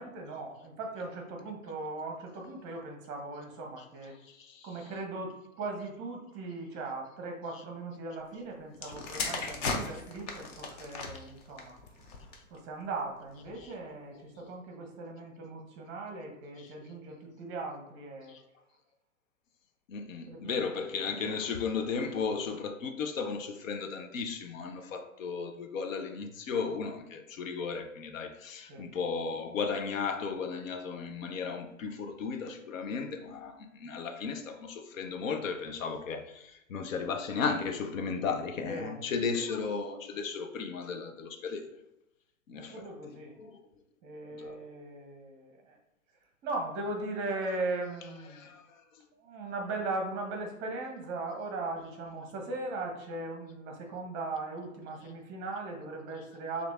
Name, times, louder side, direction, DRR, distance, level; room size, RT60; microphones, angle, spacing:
voice 1, 0.0-4.2 4.6-11.8 12.5-18.3 20.3-20.7 28.7-28.9 38.6-39.0 42.6-43.3 44.0-45.8 46.4-48.5 49.1-56.7, right 2 dB, 25° right, 2 dB, 0.8 m, -38 dB
voice 2, 4.3-4.7 16.6-16.7 18.3-18.4 19.9-41.7 42.5-42.9 43.4-43.6 44.3-44.6 48.3-48.6, left 5 dB, 65° left, 5 dB, 0.7 m, -35 dB
sound 1, 8.7-12.6 13.4-13.6, left 4 dB, 30° left, 0.5 m, -37 dB
5.9 x 2.6 x 2.4 m, 0.86 s
hypercardioid pair, 115°, 42 cm